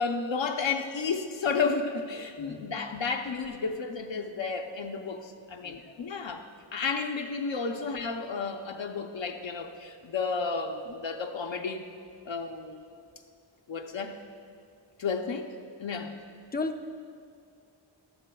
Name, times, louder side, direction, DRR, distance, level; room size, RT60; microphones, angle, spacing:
voice 1, 0.0-6.4 6.7-11.9 12.3-12.9 13.7-14.2 15.0-15.5 15.8-16.2, left 5 dB, 70° left, 3 dB, 0.7 m, -32 dB
voice 2, 2.4-2.7 5.6-6.0 16.5-16.9, left 3 dB, 20° left, 6 dB, 0.5 m, -35 dB
12.0 x 12.0 x 2.3 m, 2.3 s
wide cardioid pair, 85°, 48 cm